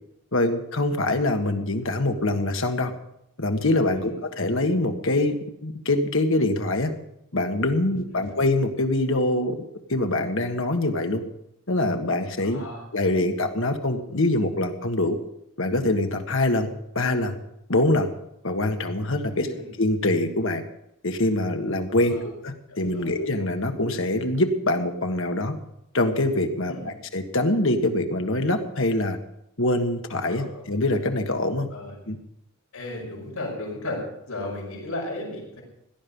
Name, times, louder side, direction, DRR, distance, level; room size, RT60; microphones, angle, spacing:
voice 1, 0.3-2.9 3.4-5.4 5.6-6.9 7.3-9.6 9.9-11.2 11.7-12.6 12.9-15.2 15.6-17.4 17.7-18.1 18.4-19.5 19.8-20.6 21.0-25.5 25.9-29.2 29.6-31.7 32.1-32.2, left 2 dB, 60° left, 6 dB, 1.6 m, -24 dB
voice 2, 7.9-8.4 12.4-12.8 19.3-19.7 21.9-22.3 22.7-23.1 26.7-26.9 30.3-30.6 31.7-31.9 32.7-35.6, left 2 dB, 90° left, -1 dB, 5.7 m, -35 dB
17.5 x 12.0 x 5.5 m, 0.80 s
head